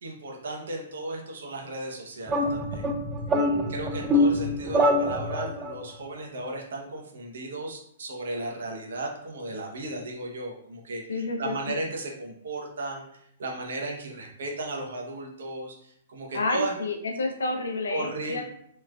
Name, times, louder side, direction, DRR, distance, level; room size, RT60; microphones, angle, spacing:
voice 1, 0.0-2.9 3.7-16.7 17.9-18.4, right 2 dB, 70° right, -1 dB, 0.7 m, -35 dB
sound 1, 2.3-5.7, left 1 dB, 20° right, 0.3 m, -25 dB
voice 2, 3.3-3.7 11.1-11.7 16.3-18.4, left 3 dB, 75° left, 2 dB, 0.5 m, -30 dB
3.0 x 2.3 x 2.2 m, 0.69 s
hypercardioid pair, 120°, 0 cm